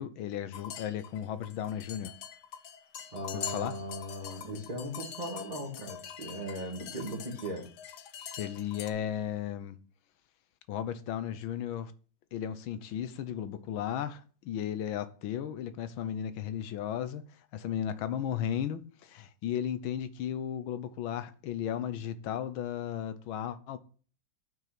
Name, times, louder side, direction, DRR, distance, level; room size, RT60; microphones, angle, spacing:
voice 1, 0.0-2.1 3.3-3.7 8.4-9.8 10.7-11.9 12.3-17.2 17.5-23.8, left 9 dB, 80° left, 1.5 m, -35 dB
sound 1, 0.5-8.9, left 8 dB, 65° left, 1.4 m, -44 dB
voice 2, 3.1-7.6, equal, 20° right, 1.7 m, -38 dB
9.2 x 5.9 x 5.9 m
omnidirectional pair, 2.2 m